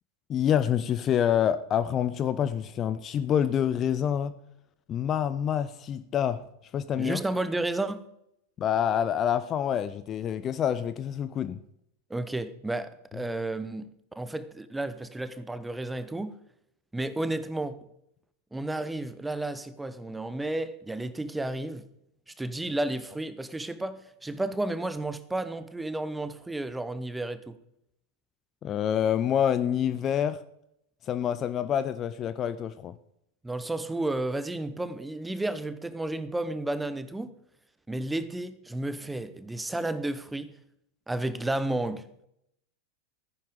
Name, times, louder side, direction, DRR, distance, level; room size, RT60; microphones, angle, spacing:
voice 1, 0.3-4.3 4.9-6.4 6.7-7.2 8.6-11.6 28.6-30.4 31.1-32.9, left 9 dB, 30° left, 0.5 m, -27 dB
voice 2, 7.0-8.0 12.1-13.9 14.1-16.3 16.9-17.9 18.5-21.8 22.3-27.6 33.4-37.3 37.9-40.5 41.1-42.3, right 2 dB, 5° right, 0.9 m, -32 dB
14.0 x 10.0 x 5.1 m
figure-of-eight pair, 90°, 0 cm